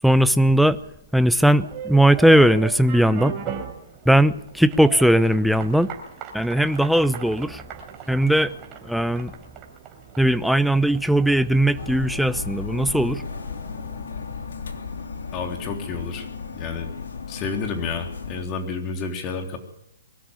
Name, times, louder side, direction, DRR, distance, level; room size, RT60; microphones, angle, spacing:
voice 1, 0.0-0.8 1.1-3.3 4.1-5.9 6.3-7.6 8.1-8.5 8.9-9.3 10.2-13.2, right 1 dB, ahead, 14 dB, 0.7 m, -18 dB
sound 1, 1.5-14.2, right 7 dB, 25° right, 4.0 m, -39 dB
sound 2, 11.7-18.4, left 5 dB, 70° left, 3.4 m, -34 dB
voice 2, 15.3-16.9 17.3-19.6, left 4 dB, 25° left, 3 dB, 3.6 m, -30 dB
22.5 x 13.0 x 9.7 m, 0.81 s
hypercardioid pair, 135°, 0 cm